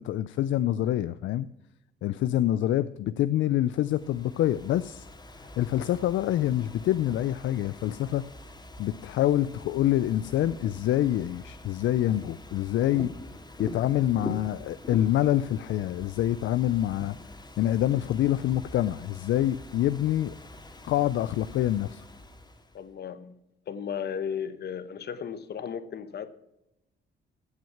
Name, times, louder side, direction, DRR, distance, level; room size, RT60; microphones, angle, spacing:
voice 1, 0.0-1.5 2.0-5.1 5.6-8.2 8.8-13.1 13.6-17.2 17.6-20.3 20.8-22.0, left 12 dB, 70° left, 14 dB, 0.5 m, -26 dB
Ocean / Fireworks, 3.5-22.8, left 1 dB, 20° left, 2.1 m, -45 dB
voice 2, 22.7-23.3 23.7-26.4, left 7 dB, 55° left, 13 dB, 1.0 m, -35 dB
16.0 x 6.2 x 5.8 m, 0.90 s
cardioid pair, 90°, 20 cm